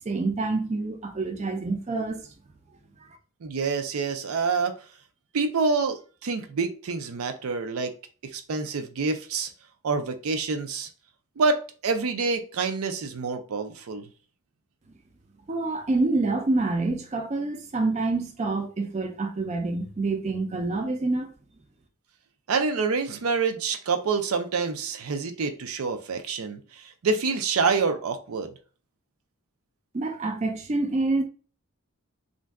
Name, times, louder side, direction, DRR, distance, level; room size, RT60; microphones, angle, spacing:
voice 1, 0.1-2.3 3.0-3.1 15.5-21.3 29.9-31.2, right 3 dB, 30° right, 0.4 m, -27 dB
voice 2, 3.4-4.9 5.3-7.9 8.2-9.5 9.8-10.9 11.4-14.1 22.5-28.5, right 4 dB, 90° right, 0.5 m, -27 dB
2.5 x 2.2 x 3.4 m
head